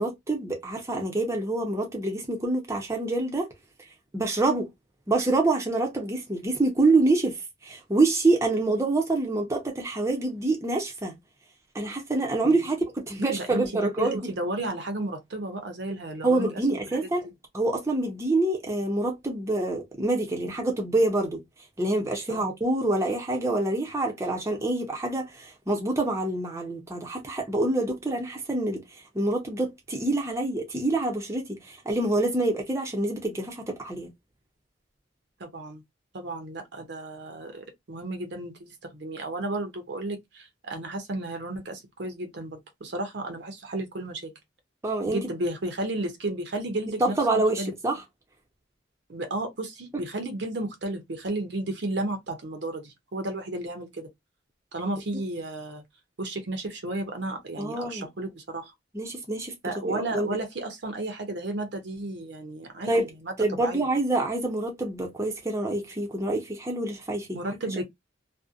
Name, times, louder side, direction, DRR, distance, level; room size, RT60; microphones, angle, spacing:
voice 1, 0.0-3.5 4.1-4.7 5.1-11.1 11.7-14.2 16.2-17.3 17.5-21.4 21.8-28.8 29.1-34.1 44.8-45.2 47.0-48.0 57.6-58.1 58.9-59.5 59.8-60.4 62.9-63.1 63.4-67.4, right 2 dB, 15° right, 0.6 m, -26 dB
voice 2, 13.2-13.6 14.0-16.5 16.9-17.1 22.3-22.5 35.4-35.8 36.1-44.3 45.1-47.7 49.1-54.1 54.7-55.8 56.2-58.7 59.6-63.3 63.6-63.9 67.3-67.8, right 2 dB, 60° right, 0.7 m, -33 dB
2.6 x 2.1 x 2.4 m
head